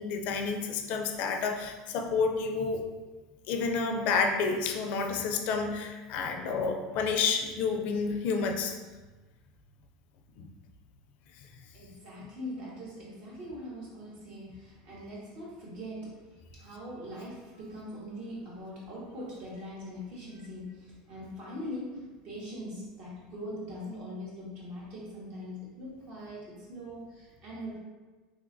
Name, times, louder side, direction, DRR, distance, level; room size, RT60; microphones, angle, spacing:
voice 1, 0.0-2.8 3.5-8.8 10.4-10.5, left 5 dB, 55° left, 4 dB, 0.4 m, -30 dB
voice 2, 11.7-27.8, equal, 55° right, -6 dB, 1.4 m, -42 dB
3.1 x 3.0 x 2.5 m, 1.3 s
supercardioid pair, 105°, 3 cm